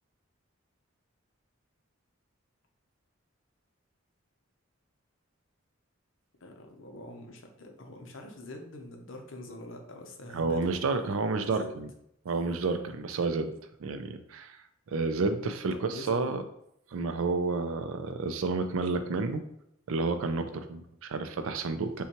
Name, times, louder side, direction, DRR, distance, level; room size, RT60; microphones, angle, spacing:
voice 1, 6.4-10.6 11.5-11.7 15.7-16.5, left 1 dB, 65° left, 3 dB, 0.7 m, -44 dB
voice 2, 10.3-11.9 12.3-13.5 13.8-14.6 14.9-16.4 16.9-19.4 19.9-22.0, right 3 dB, 75° right, 9 dB, 0.4 m, -30 dB
5.5 x 2.3 x 2.9 m, 0.76 s
head